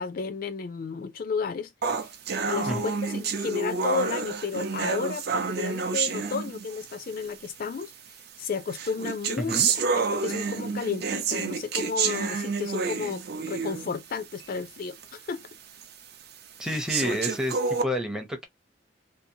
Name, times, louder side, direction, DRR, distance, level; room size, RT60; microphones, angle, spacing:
voice 1, 0.0-2.1 2.5-7.9 8.4-15.4, left 5 dB, 50° left, 0.4 m, -33 dB
sound 1, 1.8-7.0 7.8-7.9 8.7-14.0 14.4-14.5 15.0-15.1 15.8-15.9 16.7-17.8, right 5 dB, 60° right, 0.5 m, -29 dB
voice 2, 9.4-9.7 16.6-18.5, left 1 dB, 5° right, 0.5 m, -30 dB
2.7 x 2.0 x 2.6 m
head